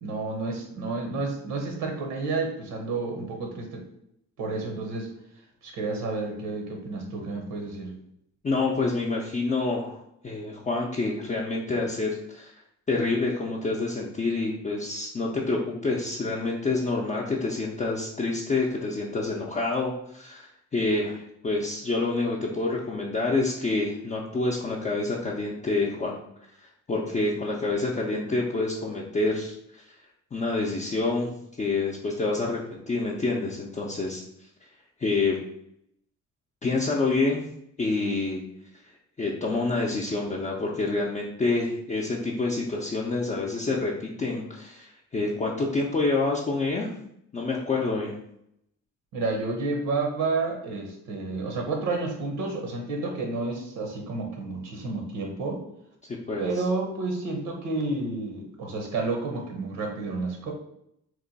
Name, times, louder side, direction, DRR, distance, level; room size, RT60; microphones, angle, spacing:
voice 1, 0.0-3.8 4.4-5.1 5.6-8.0 49.1-55.6 56.4-60.5, right 3 dB, 85° right, 2 dB, 0.8 m, -30 dB
voice 2, 8.4-12.5 12.9-26.2 26.9-29.8 30.3-31.3 31.6-34.2 35.0-35.4 36.6-37.4 37.8-38.4 39.2-46.9 47.3-48.2 56.1-56.6, left 3 dB, 25° left, -3 dB, 0.5 m, -27 dB
2.9 x 2.2 x 3.9 m, 0.76 s
cardioid pair, 90°, 30 cm